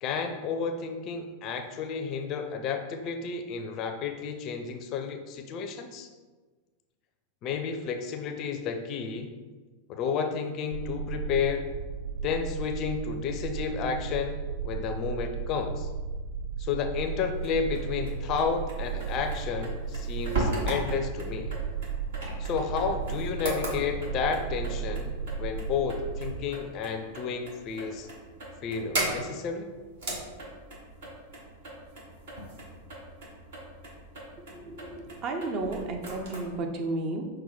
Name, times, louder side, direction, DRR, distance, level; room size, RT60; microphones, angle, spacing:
voice 1, 0.0-6.1 7.4-9.3 9.9-11.7 12.2-15.9 16.6-21.5 22.4-28.1 28.6-29.7, left 6 dB, 35° left, 6 dB, 0.4 m, -31 dB
sound 1, 10.7-26.4, right 5 dB, 85° right, 0.5 m, -35 dB
sound 2, 17.3-36.4, right 2 dB, 60° right, 1.1 m, -38 dB
voice 2, 34.6-37.3, right 2 dB, 35° right, 4 dB, 0.6 m, -32 dB
5.5 x 2.1 x 4.1 m, 1.3 s
figure-of-eight pair, 90°, 0 cm